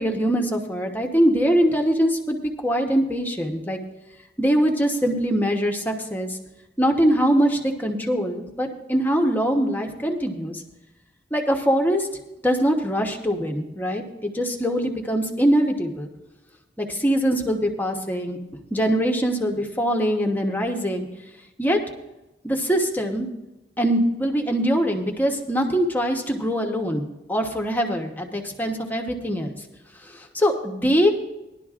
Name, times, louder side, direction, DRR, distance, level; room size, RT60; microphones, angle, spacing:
voice 1, 0.0-3.8 4.4-6.4 6.8-10.6 11.3-12.1 12.4-16.1 16.8-18.4 18.7-21.1 21.6-21.8 22.4-23.3 23.8-27.0 27.3-29.5 30.1-31.1, equal, 10° left, 2 dB, 1.0 m, -23 dB
18.5 x 11.5 x 2.5 m, 0.97 s
head